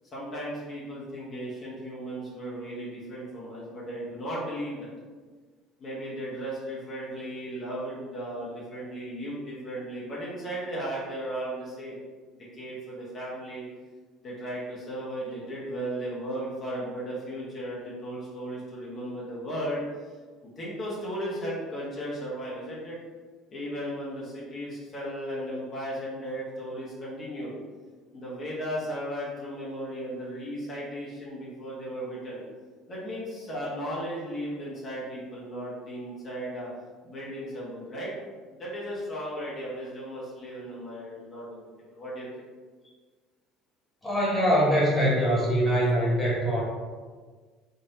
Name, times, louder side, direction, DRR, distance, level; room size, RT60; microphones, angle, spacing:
voice 1, 0.1-4.9 5.8-12.0 12.3-13.7 14.2-19.8 20.6-23.0 23.5-27.5 28.1-32.4 32.9-36.7 37.0-38.1 38.5-41.6 41.9-42.3, equal, 40° left, -6 dB, 1.0 m, -35 dB
voice 2, 44.0-46.6, equal, 20° left, -5 dB, 1.5 m, -23 dB
4.0 x 2.6 x 2.7 m, 1.5 s
hypercardioid pair, 60°, 0 cm